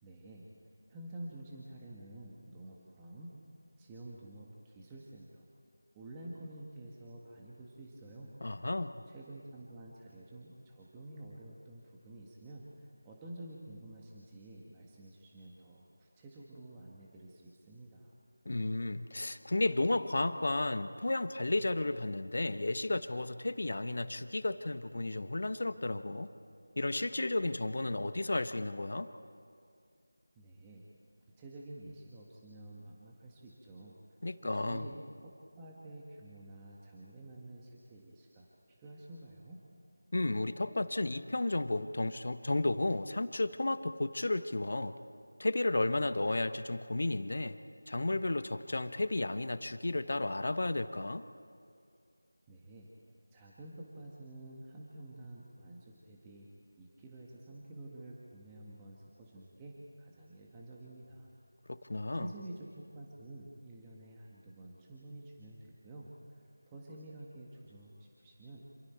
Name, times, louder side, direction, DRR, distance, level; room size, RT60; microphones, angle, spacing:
voice 1, 0.0-0.5 0.9-3.3 3.8-5.4 5.9-8.3 9.1-18.1 30.3-30.8 31.4-34.0 34.4-39.6 52.5-52.9 53.3-56.5 56.8-61.3 62.1-68.6, right 1 dB, 10° right, -4 dB, 1.6 m, -50 dB
voice 2, 8.4-9.0 18.4-26.3 26.8-29.1 34.2-34.9 40.1-44.9 45.4-47.6 47.9-51.2 61.7-62.3, left 2 dB, 55° left, 11 dB, 1.1 m, -33 dB
28.5 x 27.5 x 4.5 m, 2.3 s
figure-of-eight pair, 165°, 0 cm